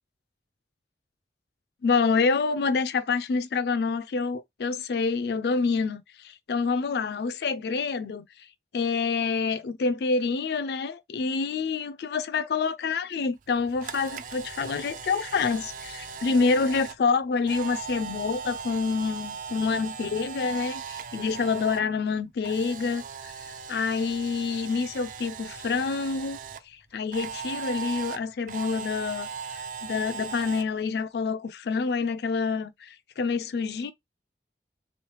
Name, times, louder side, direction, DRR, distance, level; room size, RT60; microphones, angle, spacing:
voice 1, 1.8-8.2 8.7-26.4 26.7-33.9, left 4 dB, 65° left, 0.4 m, -27 dB
Camera, 13.5-21.8 22.1-26.6 27.1-30.6, right 6 dB, 50° right, 0.4 m, -38 dB
3.5 x 3.1 x 3.1 m
head